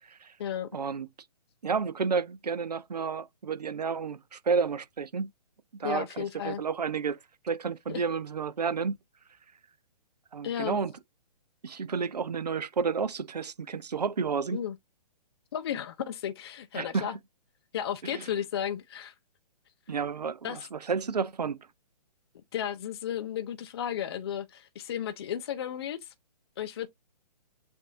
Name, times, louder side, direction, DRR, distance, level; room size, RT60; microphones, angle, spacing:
voice 1, 0.0-0.3 0.7-1.1 1.6-5.3 5.7-7.2 7.4-9.0 10.3-10.9 11.6-14.6 16.7-17.1 18.0-18.3 19.9-21.7, right 5 dB, 75° right, 0.5 m, -31 dB
voice 2, 5.8-6.6 7.9-8.0 10.4-10.8 14.5-14.7 15.5-17.1 17.7-19.1 20.4-20.6 22.5-26.1 26.6-26.9, left 9 dB, 40° left, 0.5 m, -34 dB
7.3 x 2.6 x 2.5 m
figure-of-eight pair, 125°, 21 cm